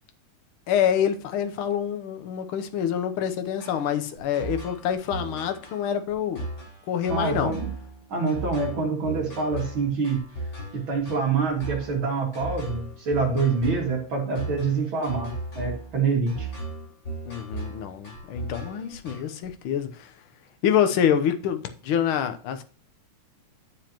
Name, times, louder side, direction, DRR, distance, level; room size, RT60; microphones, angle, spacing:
voice 1, 0.7-6.5 6.9-7.5 17.3-20.1 20.6-22.6, left 9 dB, 65° left, 1.4 m, -26 dB
sound 1, 3.6-19.5, right 2 dB, 35° left, 4.5 m, -36 dB
voice 2, 7.1-7.7 8.1-10.2 10.7-16.5, right 4 dB, 45° right, 2.8 m, -26 dB
11.5 x 7.3 x 3.0 m
omnidirectional pair, 3.4 m